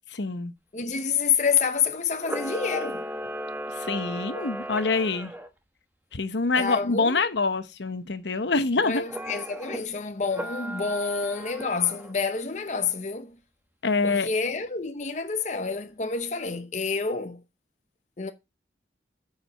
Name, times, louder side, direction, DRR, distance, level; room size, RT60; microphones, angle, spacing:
voice 1, 0.1-0.5 3.8-5.3 6.1-9.0 13.8-14.3, left 3 dB, 90° left, 1.0 m, -25 dB
voice 2, 0.7-3.1 6.6-7.3 8.8-13.3 14.0-17.4 18.2-18.3, left 5 dB, 40° left, 0.8 m, -28 dB
Camera, 2.2-5.5 9.0-9.8 10.3-12.1, equal, 10° right, 1.0 m, -36 dB
9.2 x 5.0 x 5.5 m
head